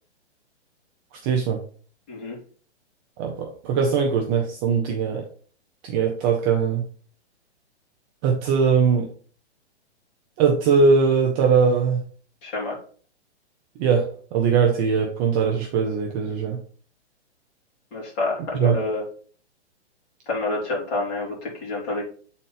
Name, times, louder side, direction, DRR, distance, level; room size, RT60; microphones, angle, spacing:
voice 1, 1.2-1.6 3.2-5.2 5.8-6.8 8.2-9.1 10.4-12.0 13.8-16.6 18.6-18.8, right 5 dB, 20° right, 2 dB, 0.6 m, -21 dB
voice 2, 2.1-2.4 12.4-12.8 17.9-19.0 20.3-22.0, left 2 dB, 30° left, -4 dB, 3.6 m, -28 dB
7.3 x 4.2 x 4.1 m, 0.43 s
hypercardioid pair, 150°, 34 cm